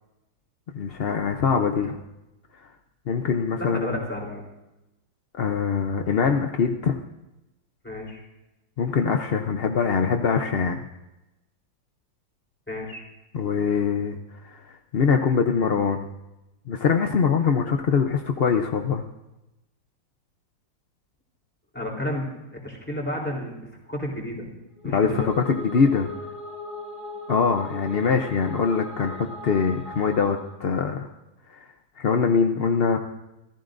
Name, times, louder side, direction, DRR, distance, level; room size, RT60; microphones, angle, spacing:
voice 1, 0.7-2.0 3.1-4.0 5.3-7.0 8.8-10.8 13.3-14.2 14.4-16.1 16.7-19.0 24.8-26.1 27.3-31.1 31.5-31.7 32.0-33.0, left 6 dB, 60° left, 5 dB, 0.6 m, -23 dB
voice 2, 3.6-4.4 7.8-8.2 12.7-13.0 21.7-22.3 22.5-24.5 24.8-25.3, left 1 dB, 5° left, -2 dB, 3.6 m, -32 dB
sound 1, 24.8-30.5, left 1 dB, 30° left, 6.1 m, -39 dB
26.5 x 14.5 x 2.6 m, 0.95 s
omnidirectional pair, 2.0 m